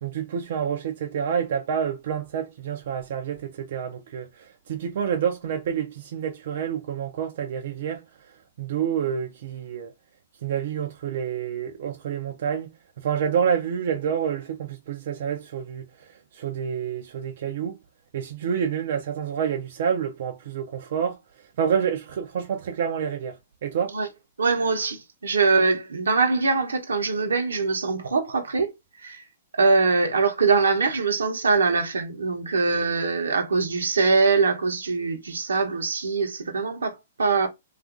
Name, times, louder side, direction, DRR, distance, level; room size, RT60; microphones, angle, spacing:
voice 1, 0.0-9.9 10.4-17.8 18.1-24.0, right 8 dB, 60° right, 0.4 m, -28 dB
voice 2, 24.4-28.7 29.0-29.2 29.6-37.5, right 4 dB, 85° right, 0.8 m, -23 dB
2.7 x 2.4 x 2.4 m
hypercardioid pair, 130°, 0 cm